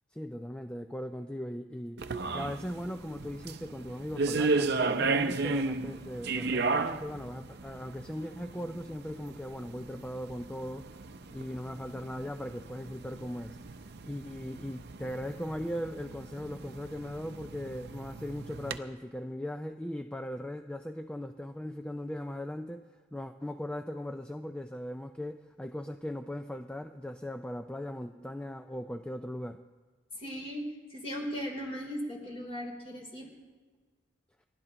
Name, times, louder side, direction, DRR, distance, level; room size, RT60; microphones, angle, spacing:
voice 1, 0.1-2.0 2.3-10.9 11.3-13.6 14.0-22.8 23.1-29.6, left 1 dB, 5° left, 7 dB, 0.3 m, -39 dB
sound 1, 2.0-18.8, right 3 dB, 55° right, 0.6 m, -35 dB
voice 2, 30.1-33.3, equal, 30° left, -1 dB, 3.4 m, -38 dB
30.0 x 12.0 x 2.9 m, 1.4 s
head